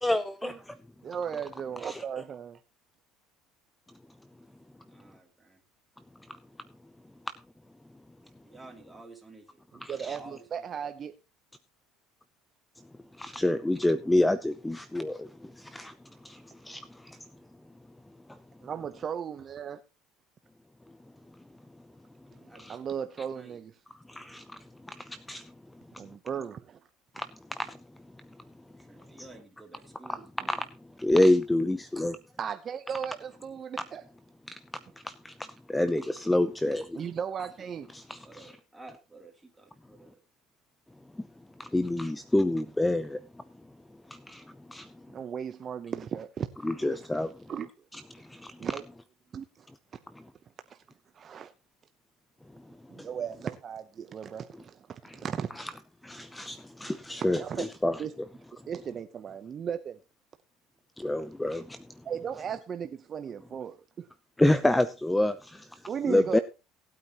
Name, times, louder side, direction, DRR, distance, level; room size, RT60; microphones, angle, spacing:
voice 1, 0.0-0.8 1.8-2.0 9.8-10.2 13.2-15.9 16.2-17.2 22.6-22.8 24.1-24.4 24.8-25.4 27.2-27.3 27.5-27.8 30.1-30.2 30.5-30.6 31.0-32.2 35.0-35.3 35.7-37.0 37.9-38.5 41.6-43.2 44.1-44.4 44.7-44.9 46.6-47.3 48.1-48.6 53.0-53.1 55.0-55.2 55.6-55.7 56.0-58.0 61.0-61.8 64.4-65.8 66.1-66.4, left 1 dB, 5° left, 0.6 m, -28 dB
voice 2, 1.0-2.6 9.9-11.1 18.6-19.8 22.7-23.7 26.0-26.8 32.4-34.0 36.9-37.9 45.1-47.0 47.5-47.7 48.6-48.8 49.3-49.7 50.7-50.8 51.1-51.5 52.9-55.5 57.4-57.7 58.0-58.1 58.7-60.0 62.0-64.1 65.9-66.4, right 7 dB, 40° right, 0.8 m, -36 dB
voice 3, 4.8-5.6 8.2-9.6 10.0-10.9 22.4-23.6 28.7-30.3 38.2-40.2, right 2 dB, 10° right, 3.1 m, -52 dB
18.5 x 8.9 x 3.0 m
supercardioid pair, 110°, 0 cm